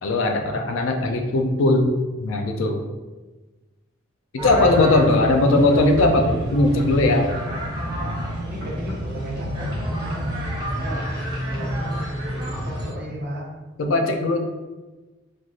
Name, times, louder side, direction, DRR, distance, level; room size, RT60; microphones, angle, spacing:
voice 1, 0.0-1.9 2.2-2.8 4.4-7.3 13.8-14.4, left 2 dB, 70° left, 4 dB, 0.4 m, -19 dB
sound 1, 4.4-12.9, equal, 20° right, 0.7 m, -28 dB
sound 2, 5.7-6.2 6.8-8.1 8.6-9.1 9.6-9.9 10.4-10.6 11.3-11.4, equal, 85° right, 0.8 m, -41 dB
voice 2, 8.4-10.2 10.8-11.0 11.5-13.5, equal, 50° right, -4 dB, 0.8 m, -34 dB
3.1 x 2.5 x 2.4 m, 1.2 s
head